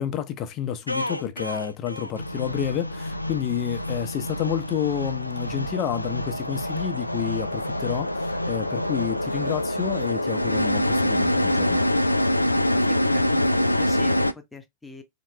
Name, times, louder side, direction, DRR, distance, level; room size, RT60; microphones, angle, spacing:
voice 1, 0.0-11.9, left 9 dB, 35° left, 0.8 m, -30 dB
sound 1, 0.9-14.3, left 1 dB, 85° left, 0.3 m, -25 dB
voice 2, 12.7-15.0, left 3 dB, 10° left, 0.9 m, -42 dB
4.2 x 3.0 x 2.9 m
figure-of-eight pair, 90°, 0 cm